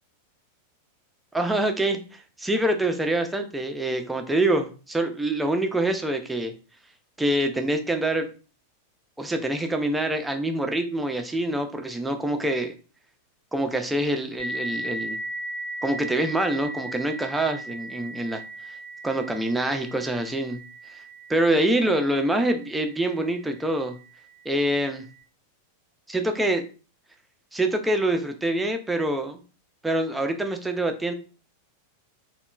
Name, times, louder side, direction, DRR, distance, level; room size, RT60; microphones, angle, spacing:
voice 1, 1.3-6.5 7.2-8.3 9.2-12.7 13.5-15.2 15.8-18.7 19.0-20.6 20.9-21.0 21.3-24.0 24.5-25.0 26.1-26.6 27.5-29.4 29.8-31.1, right 1 dB, 5° right, 5 dB, 0.4 m, -25 dB
sound 1, 14.4-23.6, right 1 dB, 65° left, 0.6 m, -37 dB
2.8 x 2.1 x 2.2 m, 0.35 s
figure-of-eight pair, 90°, 0 cm